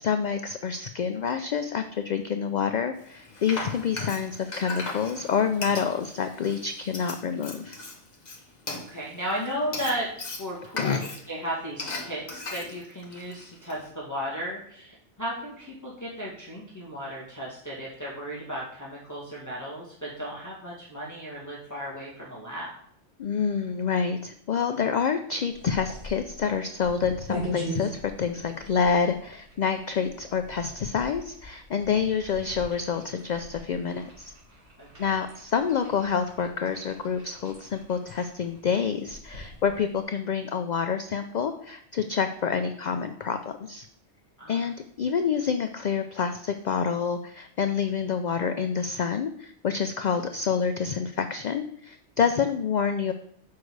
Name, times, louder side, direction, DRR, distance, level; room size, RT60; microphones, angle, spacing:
voice 1, 0.0-7.8 10.8-11.0 23.2-34.3 35.0-43.9 44.5-53.1, left 6 dB, 65° left, 7 dB, 0.4 m, -27 dB
Frying (food), 3.0-13.9, left 2 dB, 40° left, 1.1 m, -38 dB
voice 2, 8.7-10.1 10.4-22.7 34.8-35.1 44.4-44.7, equal, 15° left, -7 dB, 1.9 m, -35 dB
sound 1, 25.5-40.0, equal, 70° right, 3.3 m, -41 dB
6.6 x 5.2 x 4.6 m, 0.67 s
omnidirectional pair, 1.2 m